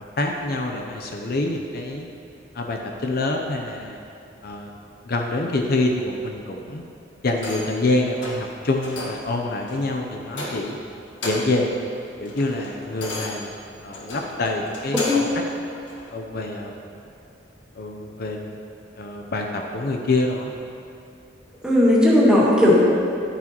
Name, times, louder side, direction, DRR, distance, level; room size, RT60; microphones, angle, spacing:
voice 1, 0.2-2.1 2.5-4.0 4.4-4.7 5.0-6.8 7.2-10.8 11.2-11.8 12.2-13.5 13.8-15.3 16.1-16.7 17.7-18.6 18.9-20.5, left 2 dB, 55° left, 2 dB, 0.6 m, -26 dB
sound 1, 7.3-7.8 8.2-8.5 8.8-9.3 9.7-9.9 10.3-10.8 11.1-11.6 12.0-15.4 15.9-16.0, left 2 dB, 85° left, 1.7 m, -34 dB
voice 2, 14.9-15.3 21.6-22.7, left 1 dB, 5° right, -8 dB, 2.1 m, -16 dB
11.0 x 9.8 x 3.0 m, 2.6 s
head